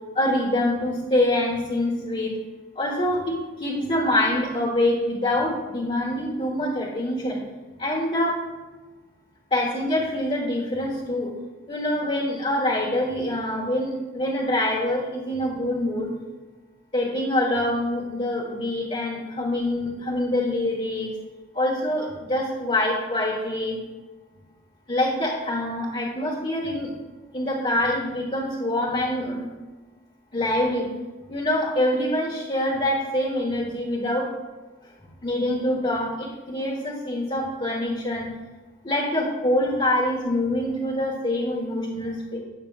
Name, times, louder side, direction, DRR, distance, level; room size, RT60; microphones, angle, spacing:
voice 1, 0.1-2.3 2.7-7.4 7.8-8.3 9.5-11.3 11.7-16.1 16.9-21.1 21.5-23.8 24.9-26.9 27.3-29.4 30.3-30.9 31.3-34.2 35.2-38.3 38.8-42.4, left 1 dB, 35° left, -5 dB, 1.5 m, -25 dB
12.5 x 8.7 x 2.5 m, 1.2 s
head